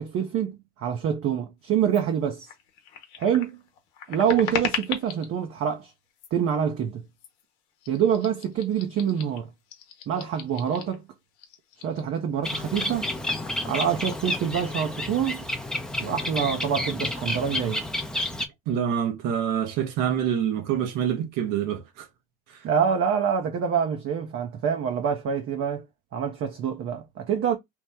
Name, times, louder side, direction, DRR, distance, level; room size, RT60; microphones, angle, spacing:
voice 1, 0.0-2.5 3.2-3.6 4.1-5.9 6.3-7.0 7.9-9.5 10.1-11.1 11.8-13.1 13.7-15.5 16.0-17.9 22.6-25.9 26.1-27.6, right 8 dB, 45° right, 0.6 m, -26 dB
sound 1, 1.9-2.0 2.4-5.3 6.1-6.5 7.2-7.4 7.8-11.0 11.3-15.0 15.3-15.4 15.7-16.4, left 8 dB, 80° left, 0.9 m, -38 dB
Bird, 12.4-18.5, left 1 dB, ahead, 0.5 m, -30 dB
voice 2, 18.7-22.1 22.5-22.6, right 9 dB, 70° right, 0.9 m, -26 dB
3.0 x 2.0 x 3.3 m
supercardioid pair, 85°, 33 cm